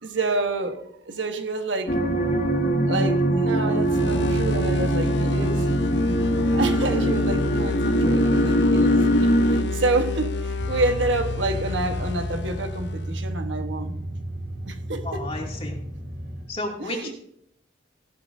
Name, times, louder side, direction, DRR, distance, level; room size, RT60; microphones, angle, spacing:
voice 1, 0.0-5.7 6.5-14.1 14.7-15.3 16.8-17.1, right 2 dB, 85° right, 1.2 m, -28 dB
sound 1, 1.9-9.6, equal, 50° left, 2.3 m, -22 dB
sound 2, 3.8-13.3, left 3 dB, 65° left, 0.5 m, -30 dB
sound 3, 10.6-16.4, equal, 55° right, 5.0 m, -33 dB
voice 2, 15.0-15.8 16.5-17.2, left 2 dB, 30° left, 2.5 m, -32 dB
15.5 x 12.0 x 2.7 m
head